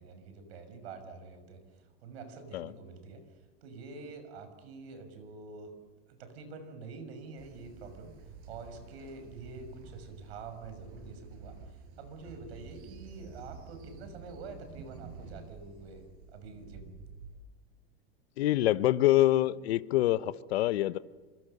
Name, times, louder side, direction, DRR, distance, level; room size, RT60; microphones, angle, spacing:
voice 1, 0.0-3.3 3.6-5.7 6.1-8.1 8.5-16.0 16.3-16.9, right 4 dB, 90° right, 9 dB, 6.2 m, -47 dB
Train, 7.4-17.4, right 5 dB, 45° right, 5.3 m, -50 dB
voice 2, 18.4-21.0, left 15 dB, 90° left, 14 dB, 1.0 m, -26 dB
26.5 x 24.0 x 6.7 m, 1.3 s
supercardioid pair, 140°, 31 cm